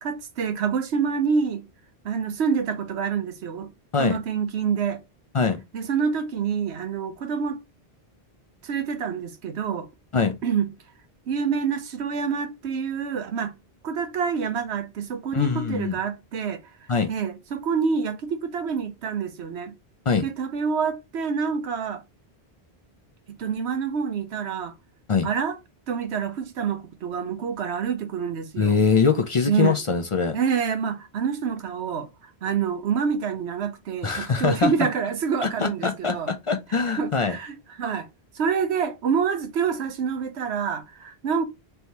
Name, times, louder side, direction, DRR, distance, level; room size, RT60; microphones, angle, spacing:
voice 1, 0.0-1.7 2.0-3.7 4.0-5.0 5.7-7.6 8.6-9.9 10.4-10.7 11.3-13.5 13.8-16.6 17.1-19.7 20.2-22.0 23.3-24.7 25.2-25.6 25.9-28.8 29.5-29.8 30.3-36.3 36.9-38.1 38.3-41.5, right 6 dB, 85° right, 1.0 m, -27 dB
voice 2, 15.3-16.0 16.9-17.1 20.1-20.2 25.1-25.3 28.6-30.4 34.0-34.7 35.4-37.4, left 5 dB, 45° left, 0.4 m, -23 dB
3.4 x 2.7 x 4.4 m
omnidirectional pair, 1.1 m